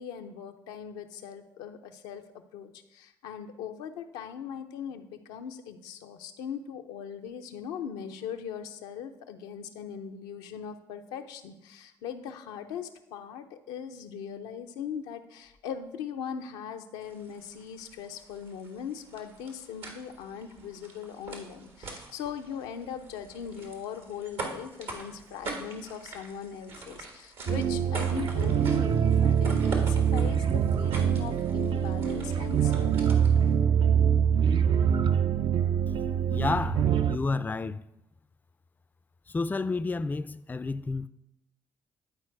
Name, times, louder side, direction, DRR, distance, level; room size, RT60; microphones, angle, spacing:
voice 1, 0.0-2.2 2.5-33.3, left 8 dB, 85° left, 0.6 m, -40 dB
sound 1, 17.0-33.5, right 3 dB, 75° right, 1.5 m, -44 dB
sound 2, 27.5-37.2, right 8 dB, 55° right, 0.5 m, -24 dB
voice 2, 36.3-37.8 39.3-41.1, left 3 dB, 20° left, 0.4 m, -30 dB
10.5 x 4.4 x 4.5 m
hypercardioid pair, 50°, 10 cm